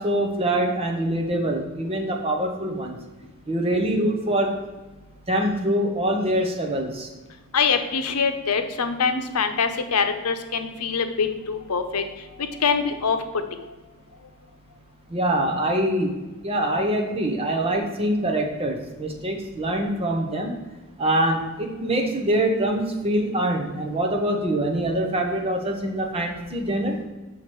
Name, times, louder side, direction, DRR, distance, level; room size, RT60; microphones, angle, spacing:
voice 1, 0.0-3.0 3.5-4.6 5.3-7.1 15.1-16.1 16.4-20.5 21.0-27.0, right 1 dB, 25° right, 2 dB, 1.0 m, -24 dB
voice 2, 7.5-12.0 12.6-13.2 13.5-13.6, left 5 dB, 90° left, 8 dB, 0.8 m, -24 dB
6.4 x 5.8 x 4.6 m, 1.2 s
head